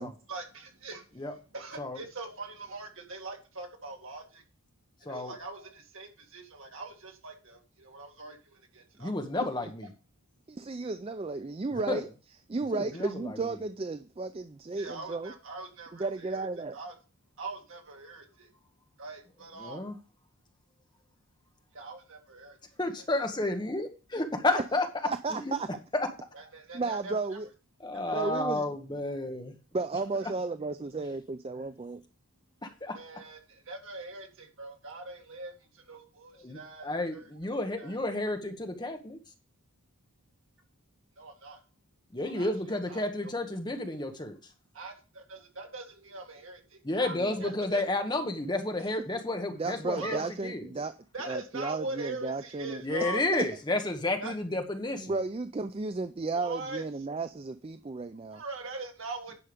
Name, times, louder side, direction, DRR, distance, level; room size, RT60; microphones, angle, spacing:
voice 1, 0.3-4.4 5.0-9.5 14.8-16.5 16.7-17.0 17.4-18.5 19.0-19.8 21.7-22.6 23.0-23.1 23.4-23.5 26.3-27.4 27.9-28.4 30.2-30.3 32.9-37.3 37.8-38.0 41.2-41.6 42.2-43.4 44.7-47.9 49.8-50.2 51.1-53.5 54.2-54.3 56.3-56.8 58.3-59.3, right 2 dB, 70° right, 2 dB, 2.2 m, -42 dB
voice 2, 9.0-9.9 11.9-12.0 12.7-13.4 19.6-19.9 22.8-23.9 24.1-24.9 25.4-25.5 25.9-26.1 27.8-29.5 32.6-32.9 36.4-39.2 42.1-44.4 46.8-50.6 52.8-55.1, left 2 dB, 20° left, 5 dB, 1.1 m, -31 dB
voice 3, 10.5-12.1 12.5-15.3 15.9-16.8 24.6-24.7 25.0-25.7 26.7-27.5 28.1-28.7 29.7-32.0 47.1-47.5 49.5-50.9 51.3-52.8 53.3-53.5 55.0-58.4, right 3 dB, 25° right, 10 dB, 0.3 m, -33 dB
10.0 x 5.7 x 5.1 m, 0.35 s
head